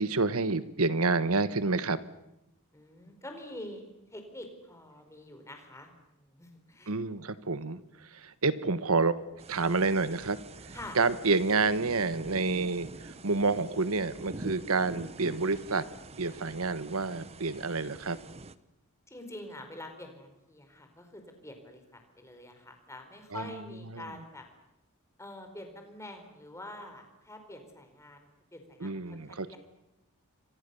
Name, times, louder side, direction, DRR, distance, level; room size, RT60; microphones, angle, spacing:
voice 1, 0.0-2.0 6.9-7.8 8.1-9.2 9.5-10.4 10.6-15.9 16.2-18.2 23.3-23.4 23.9-24.0 28.8-29.5, right 3 dB, 70° right, 14 dB, 1.3 m, -28 dB
voice 2, 2.7-6.9 10.7-11.0 19.1-24.4 25.2-29.6, left 1 dB, 15° left, 5 dB, 4.5 m, -46 dB
sound 1, 9.4-18.6, right 2 dB, 30° right, 0.9 m, -46 dB
29.5 x 24.5 x 7.0 m, 0.87 s
head